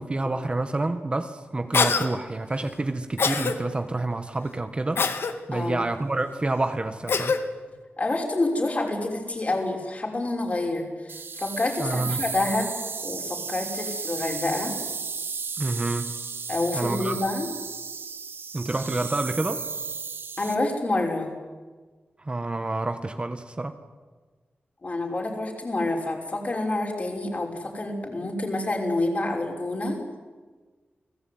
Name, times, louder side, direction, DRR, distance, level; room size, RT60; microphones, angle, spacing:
voice 1, 0.0-5.0 5.5-7.3 11.8-12.2 15.6-16.1 16.7-17.2 18.5-19.6 22.2-23.8, right 2 dB, 25° right, 8 dB, 1.5 m, -28 dB
Cough, 1.7-2.1 3.2-3.5 5.0-5.3 7.1-7.4, left 5 dB, 80° left, 2.1 m, -23 dB
voice 2, 5.5-5.8 8.0-11.1 11.4-14.7 16.5-17.5 20.4-21.3 24.8-30.0, left 2 dB, 40° left, 2 dB, 6.0 m, -28 dB
sound 1, 11.1-20.6, right 5 dB, 70° right, 1.8 m, -34 dB
29.5 x 20.0 x 9.6 m, 1.4 s
wide cardioid pair, 135°, 4 cm